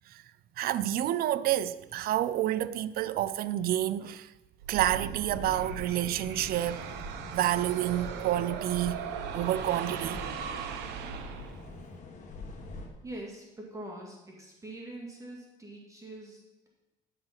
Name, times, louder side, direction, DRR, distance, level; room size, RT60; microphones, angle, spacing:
voice 1, 0.6-4.3 4.7-9.0 9.3-10.3, right 13 dB, 65° right, 0.5 m, -29 dB
sound 1, 4.6-11.8, right 7 dB, 80° right, 0.9 m, -39 dB
sound 2, 5.1-12.9, left 3 dB, 45° left, 2.0 m, -45 dB
voice 2, 13.0-16.7, right 1 dB, 20° right, 2.1 m, -44 dB
9.6 x 6.5 x 5.9 m
cardioid pair, 110°, 17 cm